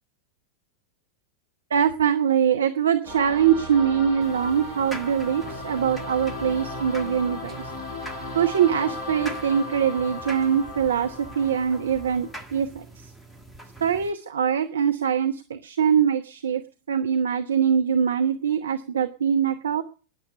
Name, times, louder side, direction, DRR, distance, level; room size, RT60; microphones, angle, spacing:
voice 1, 1.7-7.7 8.3-13.1 13.8-16.6 16.9-19.8, right 8 dB, 65° right, 6 dB, 1.0 m, -23 dB
sound 1, 3.1-12.3, left 2 dB, 20° left, 6.7 m, -36 dB
sound 2, 4.2-14.1, right 1 dB, 5° left, 1.7 m, -44 dB
13.5 x 10.5 x 6.6 m, 0.38 s
figure-of-eight pair, 90°, 0 cm